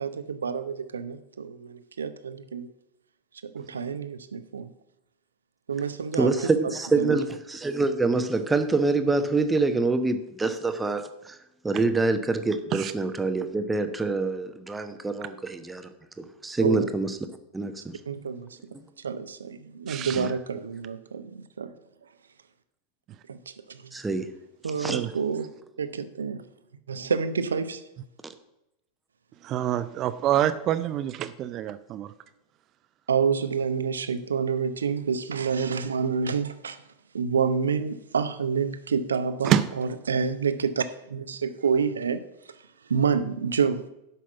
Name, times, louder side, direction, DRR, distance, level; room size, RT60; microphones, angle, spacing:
voice 1, 0.0-2.7 3.4-4.7 5.7-6.3 7.0-7.2 16.6-16.9 18.1-18.5 19.0-21.7 23.3-23.4 23.7-23.8 24.6-25.5 25.8-26.4 26.9-27.8 33.1-36.8 37.1-40.8 41.1-42.2 42.9-43.8, right 6 dB, 70° right, 11 dB, 0.8 m, -28 dB
voice 2, 6.1-11.4 11.6-15.9 16.2-17.2 17.5-18.0 18.7-18.8 20.1-20.3 23.9-24.3 24.8-25.0, right 3 dB, 10° right, 8 dB, 1.0 m, -26 dB
voice 3, 19.9-20.3 24.9-25.1 29.4-32.1 39.4-39.7, right 11 dB, 35° right, 12 dB, 0.5 m, -26 dB
11.0 x 5.8 x 7.1 m, 0.87 s
figure-of-eight pair, 90°, 0 cm